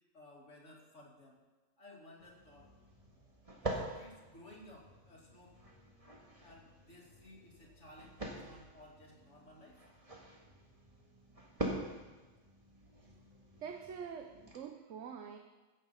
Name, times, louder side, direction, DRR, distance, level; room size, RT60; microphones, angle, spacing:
voice 1, 0.1-1.4 1.8-2.7 3.6-5.6 6.4-9.8, left 1 dB, 60° left, -3 dB, 2.8 m, -56 dB
sound 1, 2.2-14.6, right 1 dB, 25° right, 1.8 m, -46 dB
voice 2, 13.6-15.4, right 7 dB, 65° right, 6 dB, 1.0 m, -45 dB
16.0 x 7.1 x 5.6 m, 1.2 s
omnidirectional pair, 1.4 m